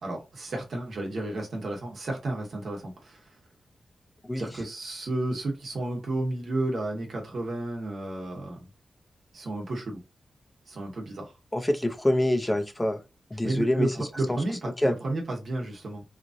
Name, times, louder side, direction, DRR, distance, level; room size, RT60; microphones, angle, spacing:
voice 1, 0.0-3.3 4.4-8.7 9.3-10.0 10.7-11.3 13.4-16.0, right 2 dB, 60° right, 1.1 m, -32 dB
voice 2, 11.5-13.0 13.3-13.9 14.8-14.9, left 1 dB, 10° left, 0.4 m, -25 dB
3.0 x 2.4 x 2.5 m
wide cardioid pair, 115°, 0 cm